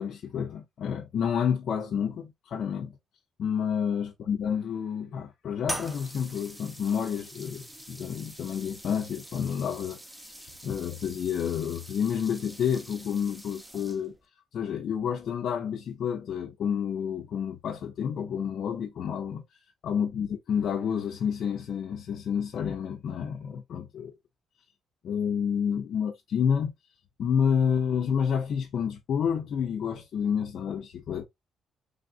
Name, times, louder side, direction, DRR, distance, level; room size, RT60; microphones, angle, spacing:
voice 1, 0.0-3.0 3.4-14.2 14.5-24.1 25.0-26.7 27.2-31.3, left 7 dB, 65° left, 0.5 m, -29 dB
sound 1, 5.6-14.2, right 1 dB, 10° right, 0.7 m, -43 dB
3.3 x 2.5 x 2.4 m
cardioid pair, 90°, 0 cm